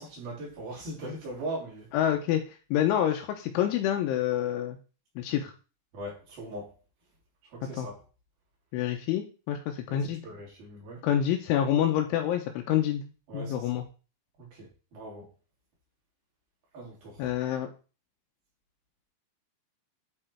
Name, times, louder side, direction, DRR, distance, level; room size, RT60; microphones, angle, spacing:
voice 1, 0.0-1.9 5.9-6.7 7.5-7.9 9.9-11.0 13.3-13.7 14.4-15.3 16.7-17.2, right 1 dB, 50° right, -4 dB, 4.5 m, -40 dB
voice 2, 1.9-2.4 2.7-4.8 5.2-5.5 7.8-7.9 8.7-10.2 11.0-13.0 13.3-13.8 17.2-17.7, left 10 dB, 85° left, 5 dB, 3.0 m, -27 dB
10.0 x 4.4 x 4.4 m, 0.34 s
omnidirectional pair, 5.9 m